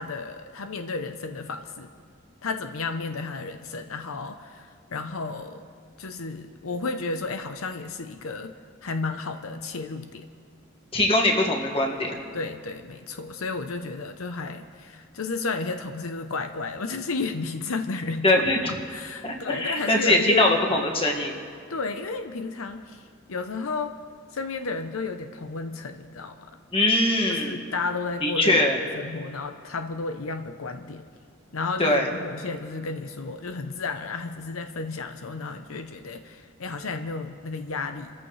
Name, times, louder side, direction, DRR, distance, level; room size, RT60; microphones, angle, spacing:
voice 1, 0.0-1.9 2.4-5.6 6.0-8.5 8.8-10.3 12.3-20.9 21.7-24.0 24.3-26.5 27.3-28.6 28.9-31.0 31.5-38.1, left 3 dB, 85° left, 7 dB, 0.7 m, -32 dB
voice 2, 10.9-12.2 18.2-18.7 19.2-21.4 26.7-27.6 28.2-28.8 31.8-32.1, left 1 dB, 25° left, 1 dB, 1.9 m, -22 dB
29.0 x 14.5 x 3.3 m, 2.3 s
head